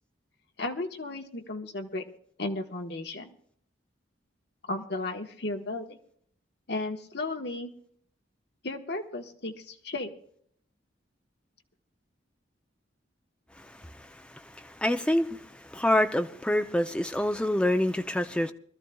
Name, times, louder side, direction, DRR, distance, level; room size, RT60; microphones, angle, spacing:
voice 1, 0.6-2.0 2.4-3.3 4.7-6.0 6.7-7.7 8.6-10.1, left 2 dB, 55° left, 1.2 m, -34 dB
voice 2, 13.6-18.5, left 1 dB, 5° left, 0.5 m, -27 dB
24.5 x 13.0 x 2.3 m
head